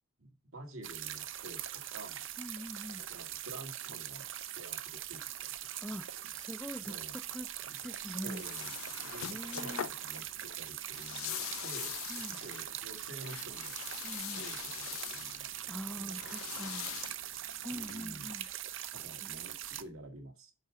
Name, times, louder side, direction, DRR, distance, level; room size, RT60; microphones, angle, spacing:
voice 1, 0.2-2.2 3.0-4.3 4.6-5.7 6.8-7.1 7.7-11.3 11.6-12.0 12.3-13.8 14.3-16.3 16.7-16.8 17.7-18.3 18.9-20.5, right 1 dB, 85° right, 4 dB, 2.2 m, -50 dB
sound 1, 0.8-19.8, right 12 dB, 60° right, 0.6 m, -42 dB
voice 2, 2.4-3.0 5.8-7.5 7.8-8.4 9.3-9.9 12.1-12.4 14.0-14.5 15.7-17.0 17.6-18.5 19.2-19.4, equal, 5° left, 11 dB, 0.4 m, -44 dB
sound 2, 7.6-18.4, left 12 dB, 70° left, 0.4 m, -44 dB
5.9 x 5.7 x 6.8 m, 0.28 s
head